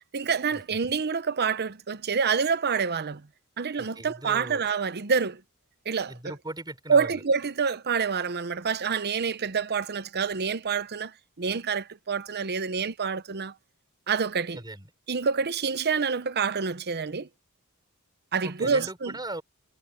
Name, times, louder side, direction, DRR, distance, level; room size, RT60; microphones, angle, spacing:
voice 1, 0.1-3.2 3.6-5.4 5.9-6.3 6.9-13.5 14.1-14.6 15.1-17.3 18.3-19.2, right 5 dB, 50° right, 0.8 m, -27 dB
voice 2, 3.8-4.6 6.1-7.2 14.5-14.9 18.4-19.4, right 2 dB, 20° right, 6.1 m, -38 dB
head